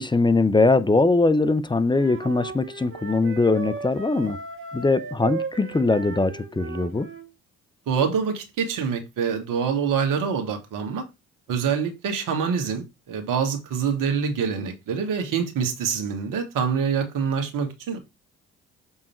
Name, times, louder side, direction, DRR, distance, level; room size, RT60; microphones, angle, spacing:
voice 1, 0.0-4.4 4.7-7.1, left 3 dB, 15° left, 0.8 m, -21 dB
Wind instrument woodwind instrument, 1.9-7.3, right 4 dB, 35° right, 1.9 m, -36 dB
voice 2, 7.9-11.0 11.5-18.0, right 6 dB, 65° right, 2.0 m, -25 dB
7.2 x 3.6 x 4.5 m
hypercardioid pair, 50°, 35 cm